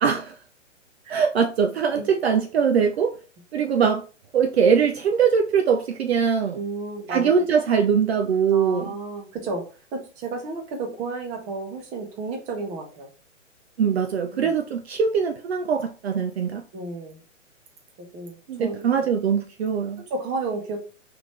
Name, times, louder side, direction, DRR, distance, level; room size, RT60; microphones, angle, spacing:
voice 1, 0.0-0.3 1.1-3.2 3.5-4.0 4.3-6.6 7.1-8.9 13.8-16.6 18.5-20.0, right 6 dB, 55° right, 0.5 m, -22 dB
voice 2, 6.5-7.4 8.5-9.6 9.9-13.1 14.3-14.5 16.7-17.2 18.1-19.0 20.0-20.8, right 3 dB, 20° right, 1.0 m, -32 dB
3.9 x 3.3 x 3.1 m
hypercardioid pair, 135°, 38 cm